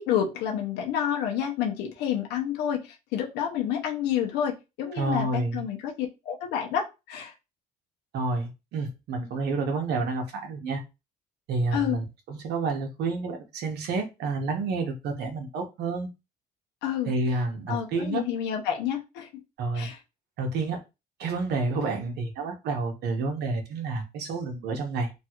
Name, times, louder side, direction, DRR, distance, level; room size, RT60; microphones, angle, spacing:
voice 1, 0.0-7.3 11.7-12.0 16.8-17.1 17.7-19.3 19.7-20.0, left 9 dB, 90° left, 2 dB, 0.7 m, -29 dB
voice 2, 4.9-5.6 8.1-10.8 11.5-16.1 17.0-18.2 19.6-19.9 20.4-20.8 21.2-25.1, right 3 dB, 75° right, 4 dB, 1.0 m, -29 dB
3.1 x 2.4 x 2.9 m, 0.26 s
cardioid pair, 110°, 17 cm